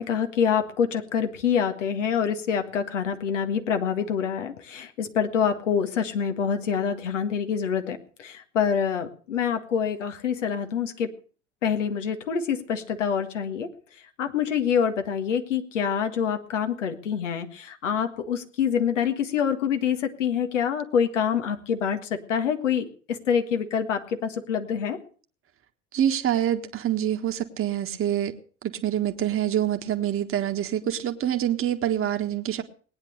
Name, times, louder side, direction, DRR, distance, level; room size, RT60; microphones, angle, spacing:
voice 1, 0.0-11.1 11.6-13.7 14.2-25.0, left 7 dB, 80° left, 7 dB, 1.7 m, -26 dB
voice 2, 25.9-28.3 28.6-32.6, right 11 dB, 35° right, 6 dB, 1.5 m, -26 dB
19.0 x 9.7 x 6.5 m, 0.41 s
figure-of-eight pair, 65°, 37 cm